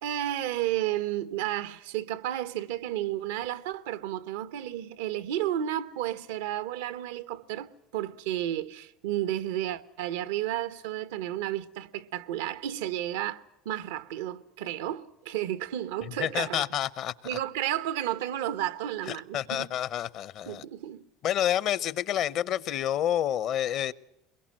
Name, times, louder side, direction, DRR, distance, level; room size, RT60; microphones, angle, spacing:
voice 1, 0.0-16.6 17.2-19.7 20.5-21.0, right 12 dB, 90° right, 1.0 m, -32 dB
voice 2, 16.2-17.4 19.1-20.6 21.2-23.9, left 11 dB, 55° left, 0.8 m, -29 dB
23.0 x 22.0 x 7.6 m
supercardioid pair, 110°, 0 cm